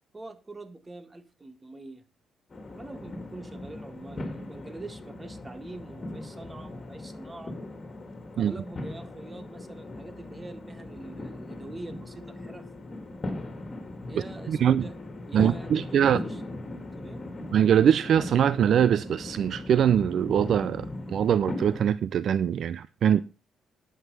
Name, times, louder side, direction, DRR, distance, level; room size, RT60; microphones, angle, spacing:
voice 1, 0.1-2.0 2.6-7.6 8.3-12.7 14.1-14.9 15.3-16.5 17.0-17.2, right 2 dB, 20° right, 1.6 m, -44 dB
sound 1, 2.5-21.9, left 2 dB, 35° left, 2.8 m, -39 dB
voice 2, 14.5-14.9 15.3-16.2 17.5-20.8 21.1-23.2, right 9 dB, 65° right, 0.5 m, -22 dB
11.0 x 8.1 x 5.4 m
cardioid pair, 90°, 0 cm